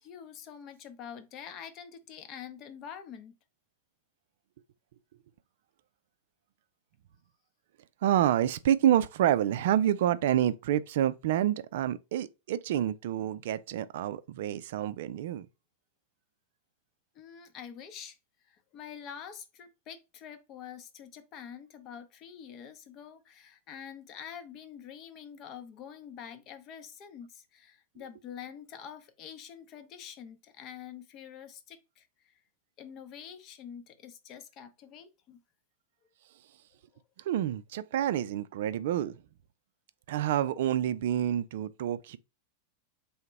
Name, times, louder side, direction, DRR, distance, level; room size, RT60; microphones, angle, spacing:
voice 1, 0.0-3.4 17.1-18.2 18.4-32.4 32.8-35.4, left 8 dB, 35° left, 0.7 m, -46 dB
voice 2, 8.0-15.5 37.2-39.2 40.1-42.2, right 11 dB, 55° right, 0.4 m, -28 dB
3.5 x 2.8 x 4.6 m
figure-of-eight pair, 90°, 0 cm